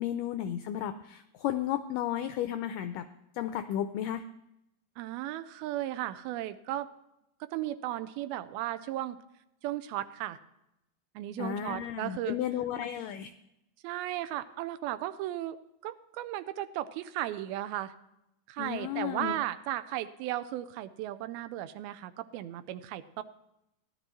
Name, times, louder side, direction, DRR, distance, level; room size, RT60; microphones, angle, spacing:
voice 1, 0.0-3.1 3.4-4.2 11.4-13.3 18.6-19.4, left 11 dB, 85° left, 9 dB, 1.9 m, -33 dB
voice 2, 5.0-6.9 7.4-9.2 9.6-10.4 11.2-12.4 13.8-17.9 18.5-23.2, right 14 dB, 90° right, 12 dB, 2.5 m, -35 dB
16.0 x 11.5 x 3.1 m, 0.85 s
omnidirectional pair, 4.3 m